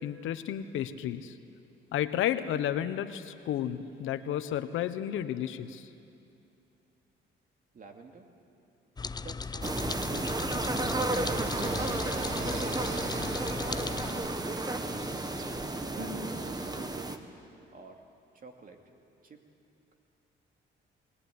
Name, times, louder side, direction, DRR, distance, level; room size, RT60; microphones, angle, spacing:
voice 1, 0.0-1.4 1.9-5.9, left 10 dB, 85° left, 11 dB, 1.0 m, -32 dB
voice 2, 7.7-8.3 9.2-10.3 12.6-13.1 13.6-14.0 14.8-17.2 17.7-18.0 18.3-18.8 19.2-19.4, right 4 dB, 45° right, 3 dB, 2.7 m, -50 dB
sound 1, 9.0-14.1, left 4 dB, 20° left, 0.5 m, -38 dB
sound 2, 9.6-17.2, right 2 dB, 20° right, 1.3 m, -33 dB
Singing, 11.1-16.9, right 2 dB, 85° right, 4.2 m, -41 dB
20.5 x 19.5 x 9.5 m, 2.7 s
cardioid pair, 90°, 20 cm